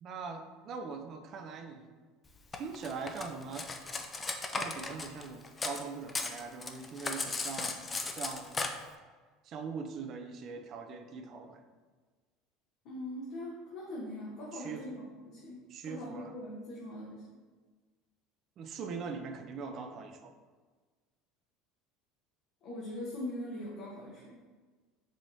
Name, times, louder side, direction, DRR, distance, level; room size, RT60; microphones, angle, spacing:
voice 1, 0.0-1.9 2.5-3.7 4.5-7.8 8.1-8.6 9.4-11.6 14.5-14.8 15.7-16.3 18.6-20.3, right 5 dB, 50° right, 6 dB, 0.4 m, -41 dB
Cutlery silverware, 2.5-5.8 6.1-8.7, left 3 dB, 25° left, 0.4 m, -36 dB
voice 2, 12.8-17.2 22.6-24.5, left 1 dB, 60° left, -6 dB, 0.9 m, -42 dB
4.8 x 2.9 x 2.7 m, 1.4 s
hypercardioid pair, 85°, 0 cm